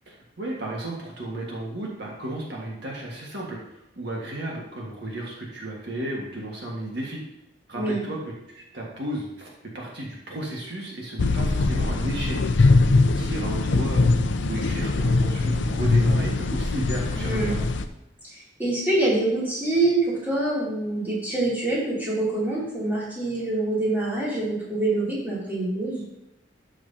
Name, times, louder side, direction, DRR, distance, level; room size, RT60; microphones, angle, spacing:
voice 1, 0.1-7.2 7.7-8.2 8.5-12.4 13.0-14.1 14.4-17.6, right 1 dB, 60° right, -3 dB, 1.7 m, -33 dB
sound 1, 11.2-17.8, left 3 dB, 65° left, 0.6 m, -22 dB
voice 2, 17.1-17.5 18.2-26.0, right 2 dB, 10° right, -7 dB, 2.9 m, -25 dB
12.5 x 6.2 x 2.8 m, 0.89 s
head